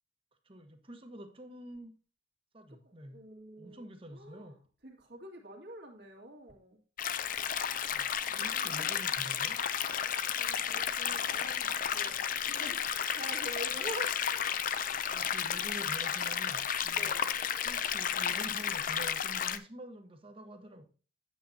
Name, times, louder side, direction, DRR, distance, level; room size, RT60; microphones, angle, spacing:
voice 1, 0.4-1.9 2.5-3.2 3.6-4.6 7.9-9.6 13.7-13.8 15.1-17.2 17.6-20.8, right 1 dB, 30° right, 6 dB, 1.2 m, -47 dB
voice 2, 2.8-4.5 4.8-6.8 8.5-8.9 10.1-14.4 16.9-17.3, right 1 dB, 60° right, -1 dB, 2.2 m, -46 dB
sound 1, 7.0-19.6, left 8 dB, 45° left, 0.5 m, -32 dB
9.1 x 8.4 x 2.8 m, 0.36 s
head